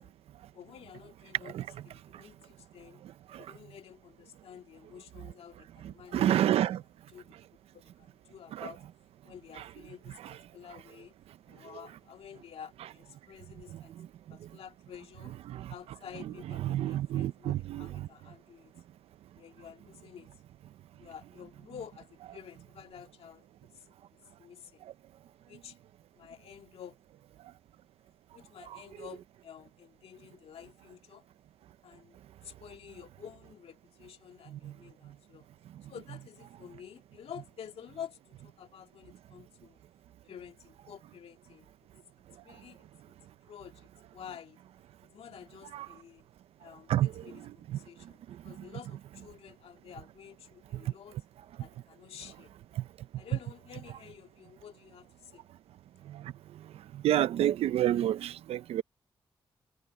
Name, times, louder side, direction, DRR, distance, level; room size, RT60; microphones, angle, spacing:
voice 1, 0.5-1.6 1.8-3.0 3.4-6.6 7.1-7.3 7.7-8.8 9.2-11.1 11.5-13.9 14.3-15.3 15.7-18.7 19.4-20.3 21.0-23.5 23.7-23.9 24.4-24.8 25.5-25.8 26.2-27.0 28.3-31.3 31.8-32.2 32.4-35.5 35.8-39.8 40.2-41.7 42.2-43.2 43.4-44.6 45.0-46.3 46.6-51.2 51.6-52.5 53.2-55.4, left 8 dB, 80° left, 2.2 m, -50 dB
voice 2, 6.1-6.8 8.6-8.7 15.5-15.6 16.6-17.9 45.7-45.9 46.9-47.1 57.0-58.8, right 12 dB, 90° right, 0.7 m, -27 dB
supercardioid pair, 50°, 10 cm